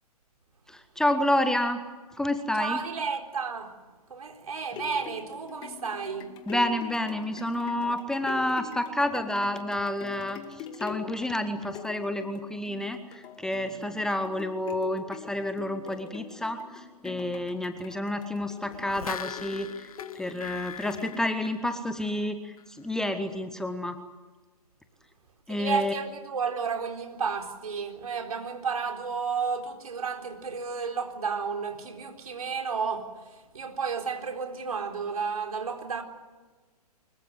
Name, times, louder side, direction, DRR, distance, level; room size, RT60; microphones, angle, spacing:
voice 1, 0.7-1.8 2.2-2.8 6.5-24.0 25.5-25.9, left 1 dB, 5° left, 1.0 m, -29 dB
voice 2, 2.6-3.7 4.1-6.3 25.5-36.0, right 5 dB, 65° right, 4.2 m, -32 dB
sound 1, 4.4-21.6 22.1-22.2, left 8 dB, 20° left, 2.0 m, -43 dB
sound 2, 18.7-22.2 22.6-22.7, left 7 dB, 65° left, 1.0 m, -41 dB
24.5 x 22.5 x 7.8 m
figure-of-eight pair, 125°, 20 cm